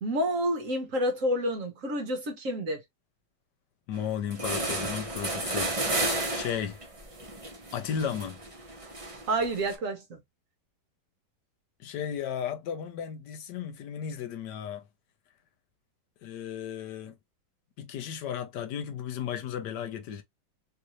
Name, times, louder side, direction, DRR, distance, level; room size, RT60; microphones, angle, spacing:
voice 1, 0.0-2.8 9.3-10.2, right 1 dB, 55° right, 1.1 m, -29 dB
voice 2, 3.9-5.7 6.3-6.8 7.7-8.4 11.8-14.9 16.2-17.2 17.8-20.2, left 8 dB, 75° left, 1.2 m, -34 dB
sound 1, 3.9-4.0 4.3-9.7, right 2 dB, 25° right, 0.7 m, -33 dB
3.1 x 2.6 x 2.9 m
omnidirectional pair, 1.9 m